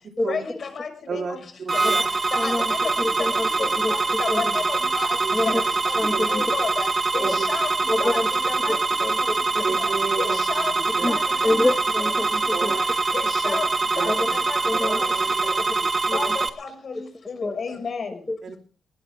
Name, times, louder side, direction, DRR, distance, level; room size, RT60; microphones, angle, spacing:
voice 1, 0.3-1.4 1.9-2.0 2.4-2.9 3.6-5.2 5.4-5.5 5.9-6.0 6.3-6.9 7.1-7.7 8.0-9.3 9.8-9.9 10.2-10.7 11.1-11.7 12.0-12.1 13.1-13.7 14.0-14.1 14.5-15.1 15.4-15.5 16.1-18.1, left 5 dB, 50° left, 6 dB, 6.0 m, -32 dB
voice 2, 1.1-2.0 5.2-5.4 6.1-6.2 7.2-7.4 8.0-8.1 9.6-10.4 11.0-11.1 12.5-12.8 13.9-14.1 14.7-16.3 18.4-18.6, right 5 dB, 55° right, 4 dB, 3.6 m, -32 dB
sound 1, 1.7-16.5, right 3 dB, 30° right, 1.7 m, -24 dB
voice 3, 2.4-3.9 4.3-4.5 5.3-5.6 6.0-6.4 7.2-7.4 7.9-8.3 8.7-9.9 10.2-10.3 11.0-12.7 13.4-13.6 14.1-14.3 14.6-15.0 16.1-16.4 16.9-17.0 17.4-17.6 18.3-18.5, left 2 dB, 15° left, 6 dB, 2.1 m, -27 dB
19.5 x 18.5 x 3.6 m, 0.38 s
cardioid pair, 100°, 0 cm